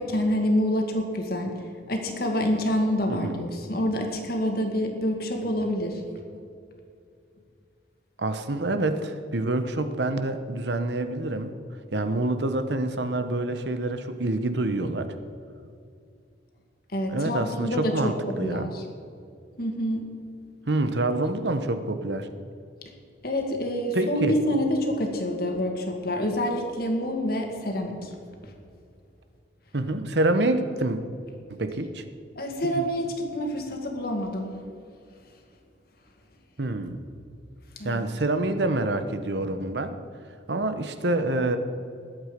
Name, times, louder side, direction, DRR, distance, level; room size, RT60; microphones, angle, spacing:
voice 1, 0.0-1.5 1.9-6.0 16.9-18.2 18.4-18.8 19.6-20.1 23.2-28.1 32.4-34.5 37.8-38.0, equal, 55° left, 3 dB, 2.0 m, -27 dB
voice 2, 3.1-3.5 6.1-6.2 8.2-11.5 11.9-15.1 17.1-18.7 20.7-22.3 23.9-24.3 29.7-31.0 31.5-32.0 32.7-32.9 36.6-37.0 37.8-39.9 40.5-41.6, right 2 dB, 65° right, 9 dB, 1.0 m, -27 dB
20.5 x 8.3 x 5.2 m, 2.4 s
head